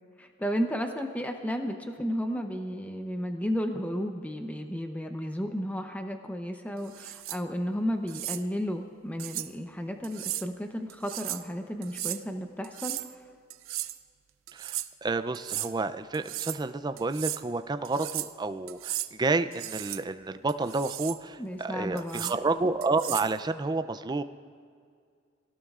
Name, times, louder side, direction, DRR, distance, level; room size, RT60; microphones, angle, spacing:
voice 1, 0.2-13.0 21.4-22.3, equal, 10° left, 4 dB, 0.7 m, -33 dB
sound 1, 6.9-7.4 8.1-8.4 9.2-9.5 10.0-10.5 10.9-11.5 11.8-12.2 12.6-13.1 13.5-14.0 14.5-14.9 15.3-15.7 16.1-16.6 17.0-17.4 17.8-18.3 18.7-19.1 19.5-20.0 20.5-21.2 22.0-22.4 22.8-23.3, right 14 dB, 80° right, 0.5 m, -35 dB
voice 2, 14.5-24.2, right 3 dB, 20° right, 10 dB, 0.4 m, -30 dB
26.0 x 18.0 x 2.5 m, 2.2 s
head